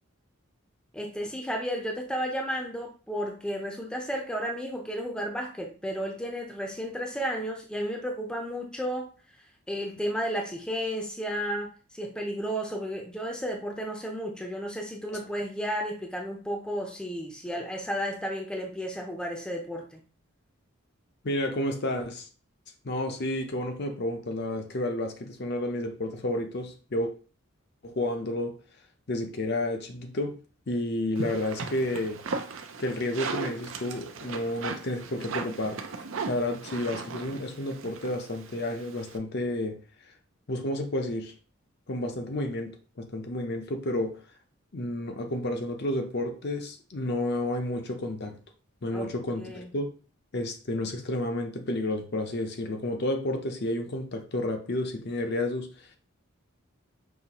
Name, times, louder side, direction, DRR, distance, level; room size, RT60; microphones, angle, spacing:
voice 1, 0.9-9.1 9.7-20.0 48.9-49.7, equal, 5° left, 0.6 m, -33 dB
voice 2, 21.2-22.3 22.8-27.1 27.8-28.6 29.1-30.4 30.7-32.2 32.8-35.8 36.3-39.8 40.5-41.3 41.9-44.2 44.7-48.4 48.8-49.9 50.3-55.9, left 1 dB, 50° left, 0.7 m, -31 dB
sound 1, 31.1-39.2, right 4 dB, 65° right, 0.5 m, -37 dB
5.5 x 2.8 x 2.9 m
head